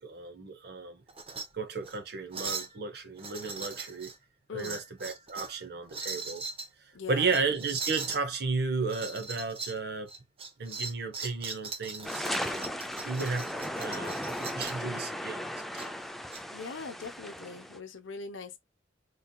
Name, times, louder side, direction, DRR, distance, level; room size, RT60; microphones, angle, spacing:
voice 1, 0.0-1.0 1.5-4.1 4.5-6.4 6.8-10.1 10.6-12.7 13.0-13.5 13.8-15.5 15.7-15.9, right 4 dB, 55° right, 0.9 m, -34 dB
sound 1, 1.1-1.5 1.8-2.0 2.3-2.7 3.2-4.2 4.6-5.6 5.9-6.7 7.3-8.2 8.9-9.8 10.1-14.8 15.8-16.4, right 4 dB, 30° right, 0.7 m, -39 dB
voice 2, 6.9-7.3 16.5-18.6, left 4 dB, 85° left, 0.8 m, -41 dB
sound 2, 12.0-17.8, equal, ahead, 0.3 m, -36 dB
4.1 x 3.3 x 2.2 m
head